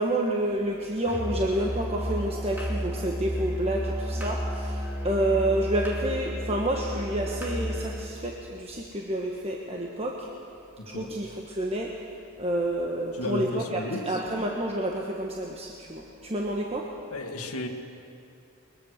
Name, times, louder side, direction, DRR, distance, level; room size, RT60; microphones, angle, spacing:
voice 1, 0.0-10.3 10.9-11.9 12.4-16.8, right 1 dB, 25° right, -1 dB, 1.3 m, -29 dB
Musical instrument, 1.0-8.2, equal, 10° right, 2.4 m, -32 dB
voice 2, 10.8-11.1 13.2-14.2 17.1-17.7, left 1 dB, 85° left, 3 dB, 2.0 m, -33 dB
21.5 x 21.5 x 6.6 m, 2.6 s
head